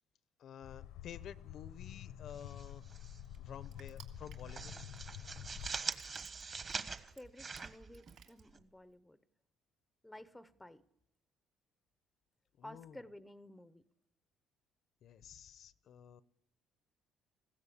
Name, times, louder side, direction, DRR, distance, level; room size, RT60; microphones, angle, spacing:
voice 1, 0.4-2.8 3.4-4.7 12.6-13.1 15.0-16.2, left 9 dB, 50° left, 0.7 m, -51 dB
sound 1, 0.6-5.7, left 11 dB, 80° left, 1.0 m, -49 dB
Crushing, 2.2-9.0, right 8 dB, 75° right, 2.8 m, -62 dB
sound 2, 2.3-3.2 3.5-3.7 4.1-8.6, right 4 dB, 30° right, 1.2 m, -44 dB
voice 2, 7.1-9.2 10.0-10.8 12.6-13.8, left 1 dB, 5° left, 0.7 m, -53 dB
20.0 x 16.0 x 8.4 m
cardioid pair, 165°, 0 cm